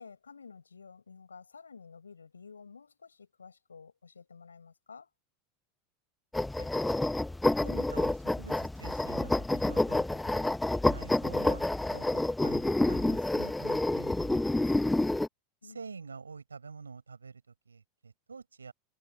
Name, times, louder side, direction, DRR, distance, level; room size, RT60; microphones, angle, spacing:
voice 1, 0.0-5.1 15.6-15.8, left 5 dB, 85° left, 4.9 m, -51 dB
sound 1, 6.3-15.3, left 2 dB, 5° left, 0.9 m, -28 dB
voice 2, 7.6-10.6 10.8-14.6 15.6-18.7, right 5 dB, 85° right, 4.9 m, -48 dB
figure-of-eight pair, 85°, 0 cm